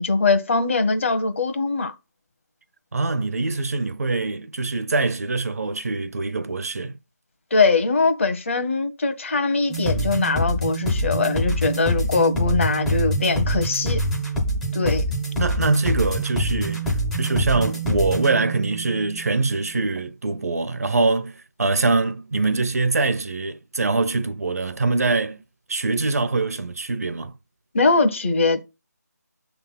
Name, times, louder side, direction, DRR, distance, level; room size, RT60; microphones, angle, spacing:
voice 1, 0.0-1.9 7.5-14.0 14.7-15.1 27.7-28.6, left 3 dB, 45° left, 1.1 m, -21 dB
voice 2, 2.9-6.9 15.4-25.4 25.7-27.4, right 3 dB, 60° right, 0.7 m, -24 dB
sound 1, 9.7-19.6, right 1 dB, 5° left, 0.6 m, -25 dB
6.6 x 3.5 x 5.6 m
figure-of-eight pair, 165°, 9 cm